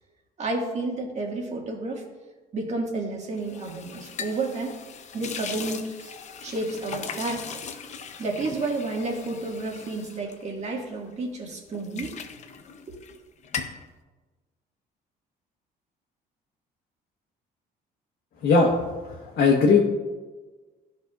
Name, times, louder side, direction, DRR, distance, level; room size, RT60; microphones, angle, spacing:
voice 1, 0.4-2.1 2.5-4.8 5.1-6.1 6.4-7.6 8.2-12.2 12.9-13.0, right 2 dB, 40° right, 0 dB, 1.8 m, -31 dB
sound 1, 3.4-11.1 11.5-13.2 13.4-13.9, left 6 dB, 45° left, 0.7 m, -39 dB
voice 2, 19.1-19.8, left 4 dB, 65° left, -3 dB, 1.2 m, -19 dB
13.5 x 5.4 x 2.4 m, 1.3 s
cardioid pair, 110°, 17 cm